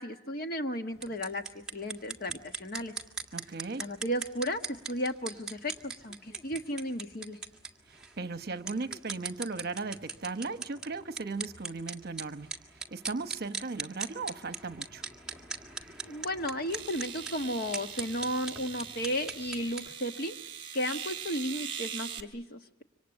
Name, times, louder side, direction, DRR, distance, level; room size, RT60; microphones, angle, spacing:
voice 1, 0.0-2.9 3.8-7.4 16.0-20.4 20.7-22.8, equal, 50° left, 6 dB, 1.3 m, -34 dB
sound 1, 0.9-19.9, right 4 dB, 5° right, 1.8 m, -41 dB
voice 2, 3.3-3.9 7.9-12.5 12.9-15.0, right 3 dB, 50° right, 10 dB, 1.0 m, -37 dB
sound 2, 15.8-15.9 16.7-22.2, right 8 dB, 30° right, 2.3 m, -41 dB
26.5 x 25.0 x 8.8 m, 0.84 s
head